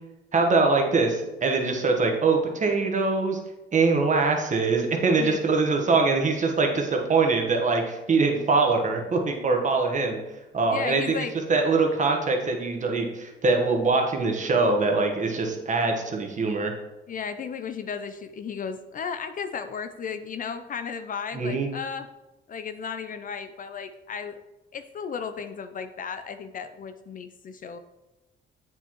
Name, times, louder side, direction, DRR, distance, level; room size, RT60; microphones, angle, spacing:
voice 1, 0.3-3.4 3.7-10.2 10.5-11.2 11.5-16.7 21.3-21.7, right 3 dB, 40° right, 2 dB, 1.2 m, -23 dB
voice 2, 10.7-11.3 17.1-22.1 22.5-24.4 24.7-27.8, left 6 dB, 45° left, 9 dB, 0.4 m, -34 dB
7.9 x 4.6 x 3.0 m, 1.0 s
cardioid pair, 90°, 20 cm